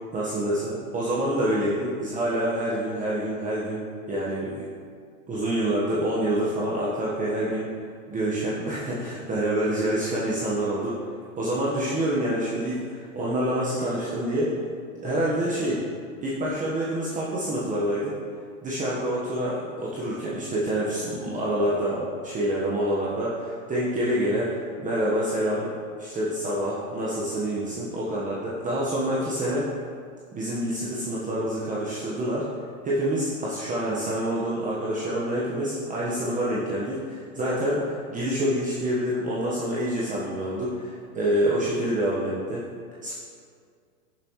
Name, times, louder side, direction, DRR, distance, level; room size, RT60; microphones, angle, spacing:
voice 1, 0.1-4.7 5.3-7.7 8.1-10.9 11.4-14.6 15.0-15.8 16.2-18.1 18.6-25.7 26.0-29.7 30.3-32.5 32.8-42.6 43.0-43.1, right 1 dB, 20° right, -6 dB, 1.3 m, -27 dB
13.5 x 7.4 x 3.2 m, 2.1 s
hypercardioid pair, 125°, 43 cm